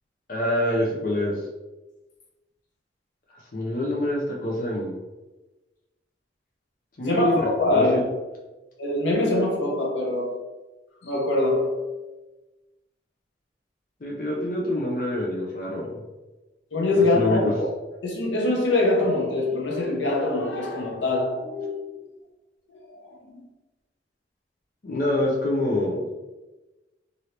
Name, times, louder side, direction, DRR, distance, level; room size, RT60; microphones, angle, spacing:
voice 1, 0.3-1.4 3.5-5.0 7.0-8.0 14.0-16.0 16.9-17.4 24.8-26.1, left 1 dB, 50° left, 0.5 m, -26 dB
voice 2, 7.0-8.1 8.8-10.4 11.0-11.9 16.7-17.7 18.0-21.8 23.0-23.4, left 2 dB, 85° left, 0.8 m, -24 dB
2.8 x 2.6 x 3.1 m
head